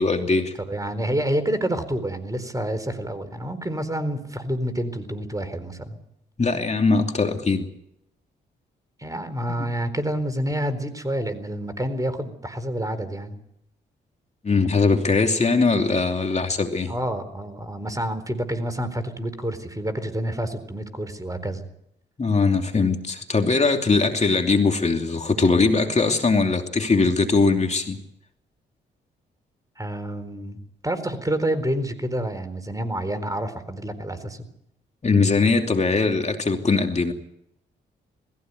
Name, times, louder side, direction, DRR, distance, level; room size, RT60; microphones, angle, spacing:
voice 1, 0.0-0.5 6.4-7.7 9.6-9.7 14.4-16.9 22.2-28.0 35.0-37.1, left 4 dB, 35° left, 4 dB, 2.8 m, -21 dB
voice 2, 0.7-6.0 9.0-13.4 16.9-21.7 29.8-30.6 30.8-34.5, right 1 dB, 15° right, 11 dB, 4.1 m, -28 dB
20.5 x 15.5 x 9.5 m, 0.75 s
supercardioid pair, 55°, 20 cm